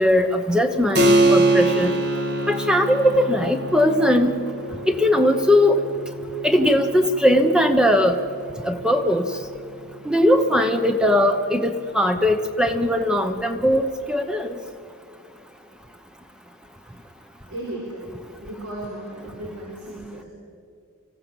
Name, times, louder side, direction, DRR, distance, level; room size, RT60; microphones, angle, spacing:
voice 1, 0.0-2.0 2.5-4.3 4.9-5.8 6.4-8.2 8.6-9.3 10.0-14.6, left 1 dB, 5° right, 7 dB, 1.0 m, -19 dB
Keyboard (musical), 0.9-11.2, right 2 dB, 45° right, 2.0 m, -25 dB
voice 2, 17.5-18.1 18.4-20.2, right 1 dB, 85° right, -2 dB, 4.6 m, -35 dB
25.0 x 16.0 x 7.2 m, 2.3 s
head